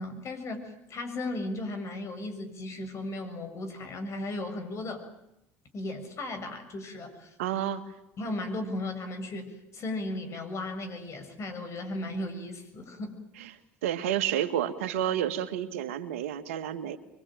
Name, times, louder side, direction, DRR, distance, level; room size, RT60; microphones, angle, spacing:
voice 1, 0.0-5.1 5.7-7.3 8.2-13.2, left 2 dB, 45° left, 7 dB, 7.4 m, -36 dB
voice 2, 7.4-7.8 13.4-13.5 13.8-17.0, right 10 dB, 85° right, 9 dB, 1.9 m, -30 dB
24.5 x 24.0 x 9.2 m, 0.85 s
hypercardioid pair, 80°, 7 cm